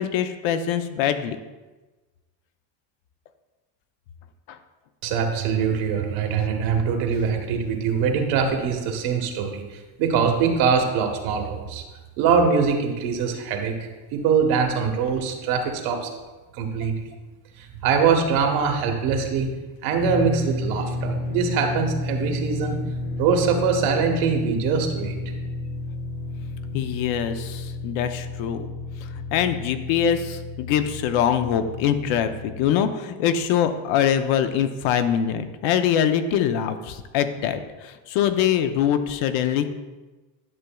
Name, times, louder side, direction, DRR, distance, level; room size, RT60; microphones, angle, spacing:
voice 1, 0.0-1.4 4.5-4.6 26.7-28.7 29.0-39.6, left 9 dB, 70° left, 9 dB, 0.7 m, -23 dB
voice 2, 5.0-11.8 12.2-16.2 16.5-17.0 17.6-19.5 19.8-22.8 23.2-25.2, right 6 dB, 90° right, 3 dB, 1.4 m, -23 dB
sound 1, 20.0-32.7, left 2 dB, 20° left, 0.5 m, -31 dB
11.0 x 7.0 x 2.3 m, 1.2 s
cardioid pair, 180°, 49 cm